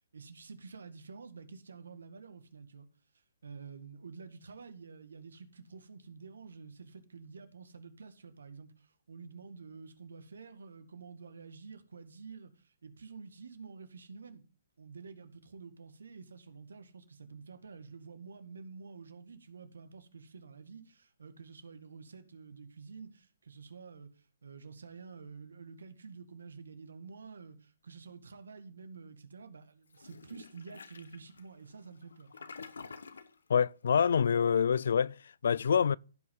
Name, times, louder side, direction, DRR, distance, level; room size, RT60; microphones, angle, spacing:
voice 1, 0.0-2.9 3.4-14.4 14.8-32.5, right 5 dB, 85° right, 1.8 m, -49 dB
Toilet flush, 29.9-33.4, left 5 dB, 85° left, 1.1 m, -49 dB
voice 2, 33.5-36.0, left 7 dB, 70° left, 0.3 m, -26 dB
16.0 x 5.4 x 3.7 m
hypercardioid pair, 150°, 0 cm